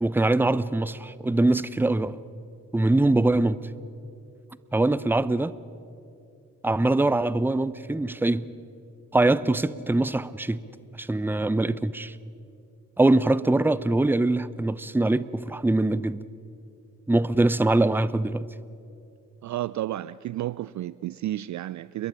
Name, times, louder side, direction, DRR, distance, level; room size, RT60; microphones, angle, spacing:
voice 1, 0.0-2.2 2.7-3.6 4.7-5.5 6.6-8.5 9.1-10.6 11.0-12.1 13.0-16.2 17.1-18.5, right 2 dB, 5° right, 0.7 m, -23 dB
voice 2, 19.4-22.1, right 14 dB, 45° right, 0.4 m, -31 dB
29.0 x 22.5 x 5.1 m
hypercardioid pair, 40°, 43 cm